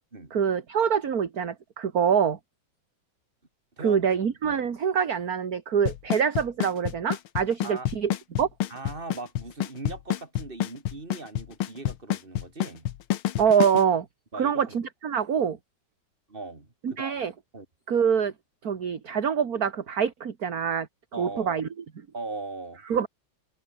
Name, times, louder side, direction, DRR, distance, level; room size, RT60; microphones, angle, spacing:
voice 1, 0.3-2.4 3.8-8.1 8.4-8.5 13.4-14.1 14.3-15.6 16.8-17.3 17.9-18.3 18.6-20.9 21.2-21.7 22.9-23.1, right 7 dB, 45° right, 2.1 m, -25 dB
voice 2, 3.8-4.3 7.6-7.9 8.7-12.9 14.3-14.8 16.3-17.2 17.5-17.7 21.1-21.6 22.1-22.8, right 3 dB, 25° right, 3.5 m, -39 dB
Drum kit / Snare drum / Bass drum, 5.9-13.8, left 12 dB, 80° left, 1.9 m, -27 dB
omnidirectional pair, 2.3 m